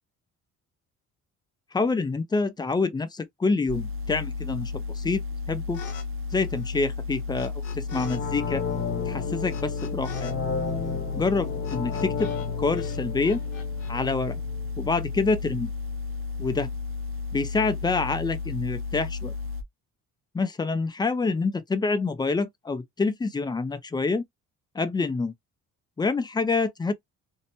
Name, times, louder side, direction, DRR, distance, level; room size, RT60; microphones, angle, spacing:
voice 1, 1.7-5.8 6.3-8.6 9.1-10.4 11.1-12.3 12.6-13.4 13.9-14.4 14.8-15.7 16.4-16.7 17.3-19.3 20.3-24.2 24.7-25.3 26.0-26.9, left 3 dB, 15° left, 0.4 m, -27 dB
sound 1, 3.7-19.6, left 4 dB, 45° right, 0.5 m, -33 dB
sound 2, 5.7-6.1 6.3-8.2 8.5-12.5 12.7-13.9, left 7 dB, 80° left, 0.8 m, -44 dB
sound 3, 7.9-14.7 15.0-15.1, left 6 dB, 40° left, 0.8 m, -33 dB
2.6 x 2.1 x 2.7 m
cardioid pair, 115°, 31 cm